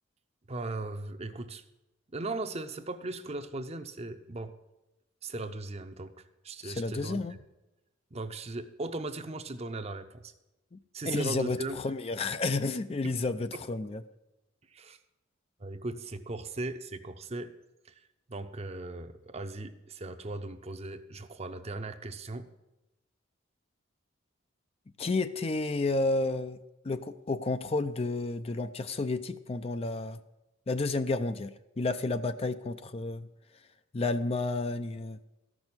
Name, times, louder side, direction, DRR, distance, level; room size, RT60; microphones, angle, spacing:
voice 1, 0.5-1.6 2.1-4.5 5.2-6.1 6.4-7.2 8.1-10.3 10.9-11.8 13.0-13.2 14.7-15.0 15.6-17.5 18.3-22.5, right 2 dB, 35° right, 8 dB, 0.7 m, -38 dB
voice 2, 6.6-7.4 10.7-10.8 11.1-14.0 25.0-26.6 26.8-30.2 30.7-33.3 33.9-35.2, left 3 dB, 30° left, 11 dB, 0.4 m, -31 dB
13.5 x 6.2 x 8.7 m, 0.98 s
head